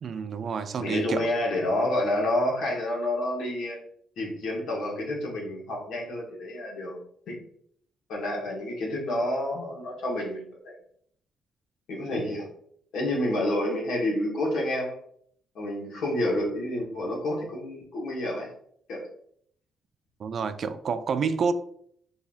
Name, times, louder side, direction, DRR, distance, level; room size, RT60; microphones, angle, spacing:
voice 1, 0.0-1.3 20.2-21.5, right 5 dB, 55° right, 0.3 m, -28 dB
voice 2, 0.8-3.8 4.2-7.0 7.3-7.4 8.1-10.7 11.9-12.5 12.9-15.0 15.5-18.5 18.9-19.1, left 1 dB, 80° left, 1.1 m, -29 dB
3.8 x 2.8 x 2.4 m
cardioid pair, 80°, 0 cm